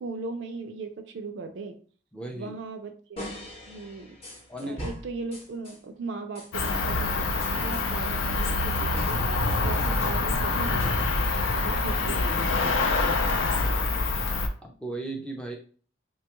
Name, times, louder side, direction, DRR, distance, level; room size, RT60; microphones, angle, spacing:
voice 1, 0.0-1.8 2.3-4.2 4.6-13.2, right 3 dB, 60° right, 6 dB, 0.4 m, -38 dB
voice 2, 2.1-2.6 4.5-4.8 13.6-14.0 14.6-15.5, right 2 dB, 5° left, 1 dB, 0.4 m, -36 dB
sound 1, 3.2-5.8 6.3-10.2 10.5-11.5, equal, 30° left, 0.8 m, -40 dB
Cricket, 6.5-14.5, left 3 dB, 75° left, 0.5 m, -26 dB
3.2 x 2.2 x 2.9 m, 0.42 s
head